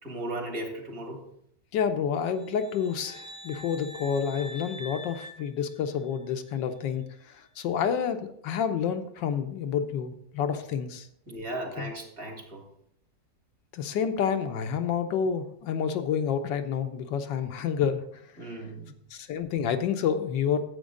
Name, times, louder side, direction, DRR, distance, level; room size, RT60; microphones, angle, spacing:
voice 1, 0.0-1.2 11.3-12.6 18.4-18.9, right 1 dB, 50° right, 1 dB, 2.3 m, -36 dB
voice 2, 1.7-11.1 11.8-11.9 13.7-18.0 18.4-18.6 19.1-20.6, left 7 dB, 80° left, 7 dB, 1.4 m, -29 dB
sound 1, 2.3-6.3, equal, 70° right, 3.3 m, -45 dB
10.5 x 7.9 x 3.7 m, 0.73 s
omnidirectional pair, 1.9 m